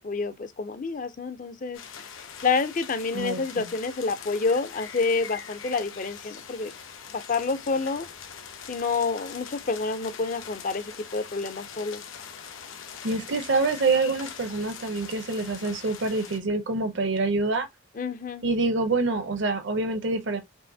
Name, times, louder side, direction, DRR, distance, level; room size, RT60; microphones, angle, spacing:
voice 1, 0.0-1.8 2.4-6.7 7.1-8.1 8.7-12.0 18.0-18.5, left 4 dB, 40° left, 0.5 m, -28 dB
sound 1, 1.7-16.4, left 7 dB, 75° left, 0.8 m, -42 dB
voice 2, 3.1-3.7 13.0-17.7 18.4-20.4, right 3 dB, 60° right, 0.6 m, -26 dB
5.5 x 2.5 x 2.7 m
head